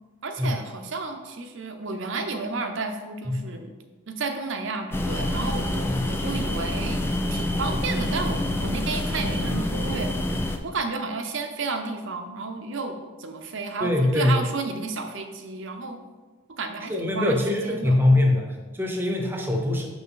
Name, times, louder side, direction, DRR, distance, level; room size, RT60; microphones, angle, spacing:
voice 1, 0.2-3.7 4.1-7.0 7.3-10.1 10.6-16.0 16.5-18.0, right 3 dB, 55° right, 6 dB, 0.7 m, -32 dB
sound 1, 4.9-10.6, left 1 dB, 10° left, 0.4 m, -27 dB
voice 2, 13.8-14.4 16.9-19.9, left 1 dB, 10° right, 1 dB, 0.8 m, -23 dB
6.4 x 6.0 x 3.8 m, 1.3 s
head